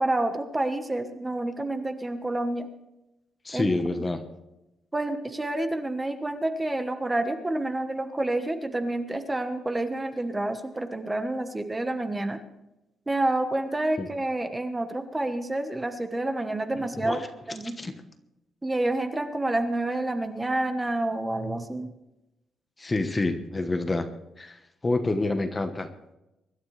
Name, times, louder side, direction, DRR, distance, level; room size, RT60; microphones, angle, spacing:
voice 1, 0.0-2.7 3.5-3.7 4.9-12.4 13.1-17.8 18.6-21.9, right 2 dB, 15° right, 7 dB, 1.2 m, -28 dB
voice 2, 3.4-4.2 14.0-14.1 16.8-17.3 17.8-17.9 22.8-24.1 24.4-25.9, left 2 dB, 20° left, 8 dB, 1.1 m, -28 dB
24.0 x 12.0 x 3.3 m, 0.93 s
cardioid pair, 145°, 0 cm